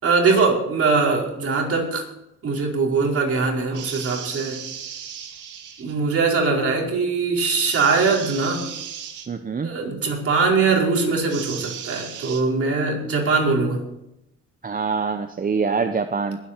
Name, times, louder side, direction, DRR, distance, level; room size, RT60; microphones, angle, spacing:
voice 1, 0.0-2.1 2.4-4.6 5.8-8.7 9.6-13.8, right 4 dB, 50° right, -2 dB, 5.0 m, -21 dB
sound 1, 3.7-5.9 7.6-9.3 11.3-12.4, right 8 dB, 85° right, 2.1 m, -35 dB
voice 2, 9.3-9.7 14.6-16.4, right 5 dB, 30° right, 8 dB, 0.8 m, -24 dB
21.5 x 8.9 x 4.5 m, 0.88 s
cardioid pair, 90°, 30 cm